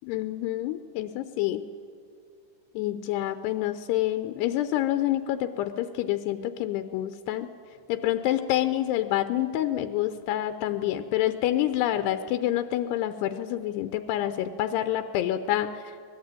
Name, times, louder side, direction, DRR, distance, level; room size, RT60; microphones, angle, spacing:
voice 1, 0.0-1.7 2.8-7.5 7.9-16.0, left 13 dB, 85° left, 10 dB, 2.8 m, -27 dB
24.5 x 19.5 x 9.1 m, 2.3 s
omnidirectional pair, 4.7 m